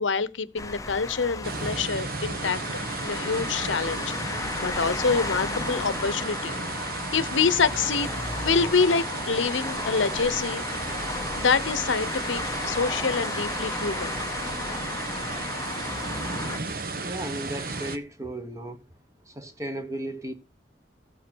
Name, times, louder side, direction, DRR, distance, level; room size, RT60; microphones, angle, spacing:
voice 1, 0.0-2.6 3.0-8.1 8.4-10.6 11.4-14.2, left 5 dB, 90° left, 0.9 m, -26 dB
sound 1, 0.6-16.6, left 3 dB, 15° left, 0.7 m, -34 dB
sound 2, 1.4-18.0, right 3 dB, 50° right, 1.2 m, -34 dB
voice 2, 17.0-18.8 19.3-20.3, right 1 dB, 15° right, 1.2 m, -35 dB
14.0 x 8.4 x 4.6 m
head